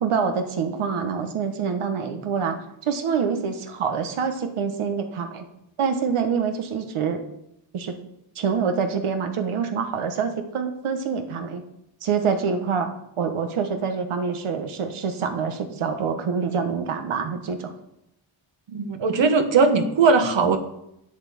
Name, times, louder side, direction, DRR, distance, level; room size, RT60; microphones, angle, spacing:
voice 1, 0.0-2.6 2.8-5.5 5.8-7.2 7.7-8.0 8.3-11.6 12.0-12.9 13.2-17.7, right 6 dB, 85° right, 6 dB, 1.4 m, -26 dB
voice 2, 18.7-20.6, right 4 dB, 65° right, 7 dB, 1.4 m, -19 dB
8.6 x 8.1 x 7.0 m, 0.80 s
wide cardioid pair, 125°, 48 cm